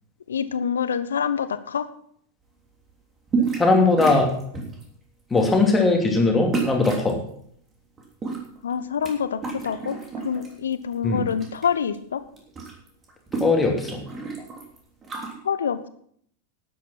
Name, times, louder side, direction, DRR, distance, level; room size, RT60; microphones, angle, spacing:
voice 1, 0.3-1.9 8.6-10.0 10.2-12.2 15.4-15.9, left 7 dB, 65° left, 13 dB, 0.9 m, -26 dB
sound 1, 3.3-3.7 4.0-4.8 5.4-5.6 6.5-7.1 8.0-9.1 9.4-10.5 10.9-11.7 11.9-12.0 12.3-15.3, right 5 dB, 25° right, 3.2 m, -30 dB
voice 2, 3.5-4.3 5.3-7.2 11.0-11.2 13.4-14.0, left 3 dB, 15° left, 2 dB, 2.9 m, -19 dB
12.0 x 9.1 x 5.9 m, 0.64 s
figure-of-eight pair, 90°, 0 cm